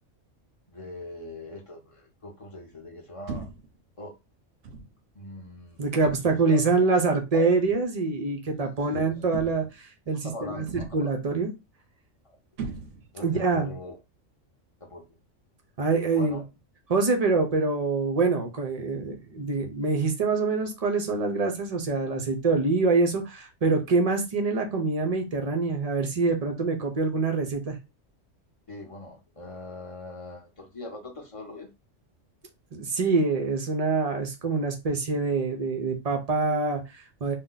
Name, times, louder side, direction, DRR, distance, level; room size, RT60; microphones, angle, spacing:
voice 1, 0.7-3.5 4.0-4.1 5.1-7.6 8.6-9.3 10.1-11.1 12.2-12.4 13.1-14.0 14.8-15.0 16.1-16.4 28.7-31.7, left 1 dB, 30° left, 0.7 m, -42 dB
sound 1, 3.3-3.8 4.6-5.0 6.0-6.5 7.6-7.8 9.3-9.8 10.7-11.2 12.6-13.3, right 4 dB, 75° right, 0.9 m, -38 dB
voice 2, 5.8-10.6 10.9-11.5 13.2-13.7 15.8-16.4 16.9-27.8 32.7-37.4, right 3 dB, 50° right, 0.5 m, -25 dB
2.6 x 2.1 x 3.8 m
omnidirectional pair, 1.3 m